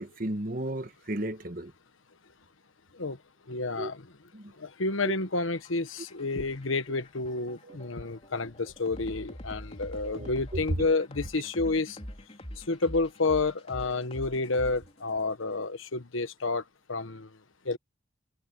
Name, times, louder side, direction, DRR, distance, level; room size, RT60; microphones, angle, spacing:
voice 1, 0.0-1.7 3.8-3.9 4.3-4.5 7.6-7.8 10.0-10.3 10.7-10.9, right 1 dB, 45° right, 1.5 m, -34 dB
voice 2, 3.5-4.0 4.6-12.0 12.7-16.6 16.9-17.3 17.6-17.8, left 3 dB, 90° left, 1.2 m, -30 dB
sound 1, 5.4-15.2, equal, 30° left, 4.0 m, -44 dB
head